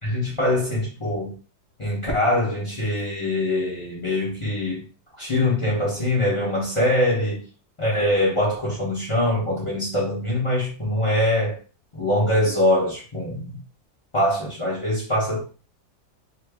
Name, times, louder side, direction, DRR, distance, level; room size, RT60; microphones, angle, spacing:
voice 1, 0.0-1.3 1.8-4.9 5.2-7.5 7.8-11.6 11.9-13.6 14.1-15.4, left 1 dB, 40° left, 0.4 m, -23 dB
2.9 x 2.6 x 3.3 m
omnidirectional pair, 2.1 m